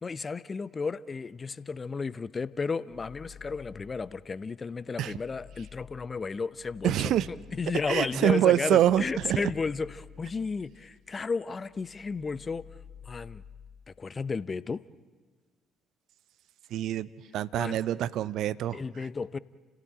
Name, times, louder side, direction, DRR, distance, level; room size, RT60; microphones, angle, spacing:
voice 1, 0.0-7.1 7.5-12.6 13.1-13.4 14.0-14.8 17.5-17.8 18.7-19.4, left 4 dB, 30° left, 18 dB, 0.8 m, -33 dB
sound 1, 2.9-4.3 4.7-11.3 11.6-13.9, left 8 dB, 80° left, 2.5 m, -52 dB
voice 2, 6.8-7.3 7.9-9.5 16.7-18.8, right 11 dB, 60° right, 18 dB, 0.6 m, -25 dB
29.5 x 16.5 x 8.9 m, 1.4 s
figure-of-eight pair, 50°, 0 cm